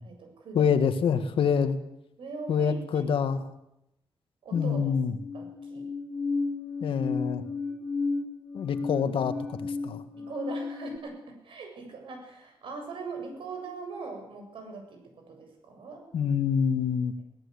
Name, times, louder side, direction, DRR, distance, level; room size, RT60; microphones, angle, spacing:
voice 1, 0.0-0.7 2.2-3.2 4.4-4.9 5.3-5.9 10.1-16.0, right 4 dB, 75° right, 3 dB, 7.6 m, -41 dB
voice 2, 0.5-1.8 2.5-3.4 4.5-5.1 6.8-7.4 8.5-10.0 16.1-17.2, left 7 dB, 85° left, 10 dB, 1.9 m, -26 dB
sound 1, 4.5-11.0, left 4 dB, 30° left, 3.0 m, -33 dB
22.0 x 17.5 x 8.4 m, 0.83 s
wide cardioid pair, 170°, 9 cm